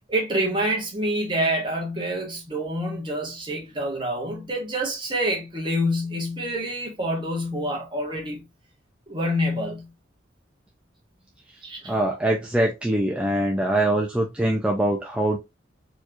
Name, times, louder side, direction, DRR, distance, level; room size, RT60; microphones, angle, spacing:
voice 1, 0.1-8.4 9.1-9.9 11.6-11.9, equal, 25° right, 1.2 m, -27 dB
voice 2, 11.9-15.4, right 1 dB, 5° right, 0.5 m, -23 dB
4.3 x 3.0 x 2.5 m
head